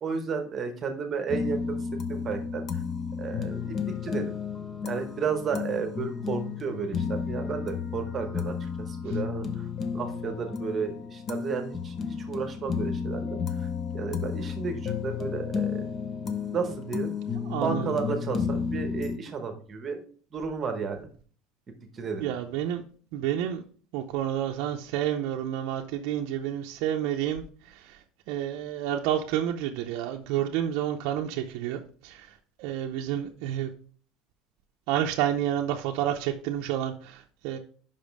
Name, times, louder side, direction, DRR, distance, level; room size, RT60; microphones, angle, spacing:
voice 1, 0.0-1.8 2.1-2.8 3.2-3.8 4.0-4.3 4.8-9.7 9.9-15.8 16.5-17.1 17.6-20.0 20.3-21.1 21.9-22.3, right 5 dB, 25° right, 6 dB, 0.9 m, -33 dB
sound 1, 1.3-19.2, left 6 dB, 25° left, 0.5 m, -32 dB
voice 2, 17.4-17.9 22.2-22.8 23.1-23.6 23.9-33.7 34.9-37.6, right 11 dB, 60° right, 1 dB, 0.5 m, -30 dB
5.4 x 5.2 x 5.2 m, 0.44 s
cardioid pair, 170°, 0 cm